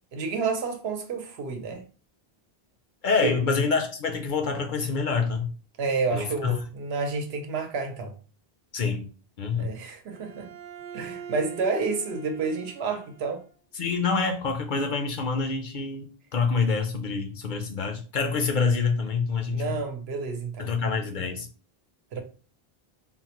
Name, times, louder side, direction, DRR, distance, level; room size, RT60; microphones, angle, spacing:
voice 1, 0.1-1.8 3.2-3.4 5.8-8.1 9.6-10.5 10.9-13.4 19.5-20.7 22.1-22.2, right 4 dB, 85° right, 0.9 m, -29 dB
voice 2, 3.0-5.5 6.1-6.6 8.7-9.1 9.4-9.7 13.7-19.8 20.6-21.5, left 5 dB, 60° left, 0.6 m, -26 dB
Bowed string instrument, 10.1-13.5, right 7 dB, 50° right, 0.7 m, -43 dB
3.7 x 2.1 x 2.9 m
omnidirectional pair, 1.0 m